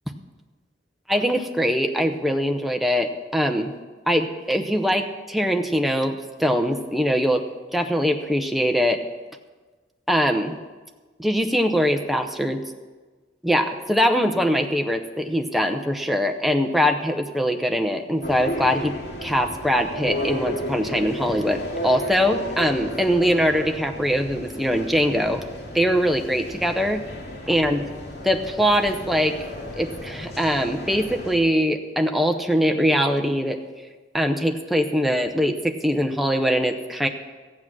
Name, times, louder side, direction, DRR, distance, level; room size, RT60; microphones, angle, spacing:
voice 1, 1.1-3.7 4.1-7.4 7.7-9.0 10.1-10.6 11.2-12.6 13.4-18.9 19.2-25.4 25.7-27.1 27.5-27.9 28.2-29.4 29.8-33.6 34.1-37.1, equal, ahead, 4 dB, 0.6 m, -22 dB
sound 1, 18.2-31.4, left 1 dB, 60° left, 2.5 m, -33 dB
14.5 x 8.6 x 6.1 m, 1.3 s
head